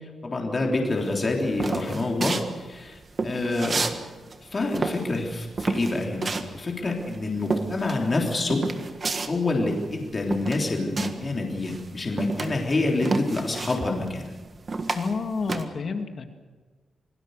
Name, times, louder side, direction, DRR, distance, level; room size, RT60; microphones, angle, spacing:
voice 1, 0.2-4.0 4.5-8.6 9.3-14.2, left 2 dB, 30° left, 0 dB, 3.5 m, -27 dB
sound 1, 1.0-4.0 4.3-11.3 11.6-15.6, right 3 dB, 35° right, 1.6 m, -30 dB
voice 2, 14.9-16.3, left 4 dB, 45° left, 6 dB, 2.2 m, -29 dB
27.5 x 19.5 x 6.7 m, 1.3 s
wide cardioid pair, 145°, 0 cm